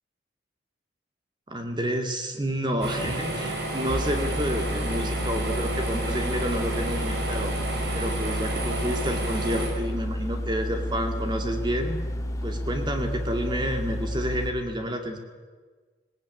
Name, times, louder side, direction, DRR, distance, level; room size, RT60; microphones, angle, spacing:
voice 1, 1.5-7.5 7.9-12.0 12.4-15.2, equal, 25° right, 4 dB, 2.2 m, -29 dB
sound 1, 2.8-9.7, right 2 dB, 60° right, 5.5 m, -31 dB
sound 2, 3.9-14.5, equal, 20° left, 1.5 m, -31 dB
19.5 x 19.0 x 9.6 m, 1.4 s
head